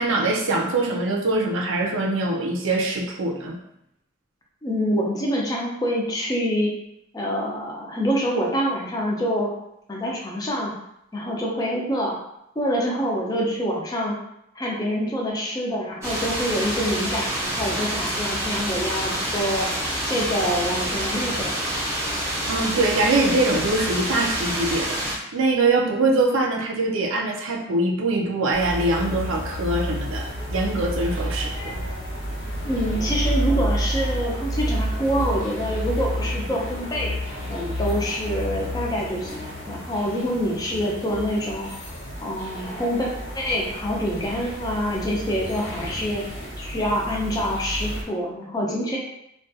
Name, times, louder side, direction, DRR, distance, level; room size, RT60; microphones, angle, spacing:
voice 1, 0.0-3.6 22.5-31.8, right 2 dB, 85° right, 1 dB, 0.5 m, -23 dB
voice 2, 4.6-6.7 7.1-9.5 9.9-10.7 11.1-12.2 12.6-14.2 14.5-19.7 20.1-21.5 32.6-37.1 37.5-41.9 42.2-43.1 43.3-46.2 46.6-49.0, equal, 20° left, -2 dB, 0.4 m, -26 dB
sound 1, 16.0-25.2, right 1 dB, 15° right, 0.7 m, -27 dB
sound 2, 28.5-48.0, equal, 75° left, 0.7 m, -30 dB
2.3 x 2.2 x 2.6 m, 0.80 s
head